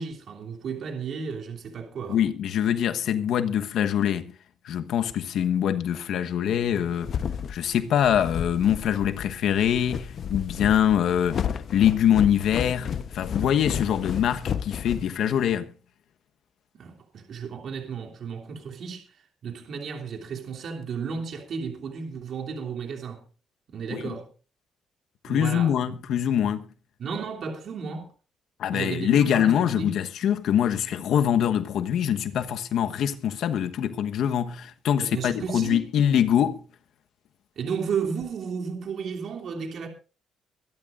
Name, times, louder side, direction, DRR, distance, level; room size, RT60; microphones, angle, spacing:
voice 1, 0.0-2.2 16.7-23.2 23.7-24.3 25.3-25.9 27.0-28.1 28.7-30.0 35.0-35.9 37.5-39.9, right 6 dB, 65° right, 3.1 m, -33 dB
voice 2, 2.1-4.3 4.6-7.1 7.5-11.5 11.7-15.7 23.9-24.2 25.2-26.6 28.6-36.6, left 9 dB, 75° left, 1.2 m, -24 dB
sound 1, 6.6-15.6, left 8 dB, 60° left, 1.0 m, -32 dB
23.0 x 12.5 x 2.6 m
cardioid pair, 90°, 0 cm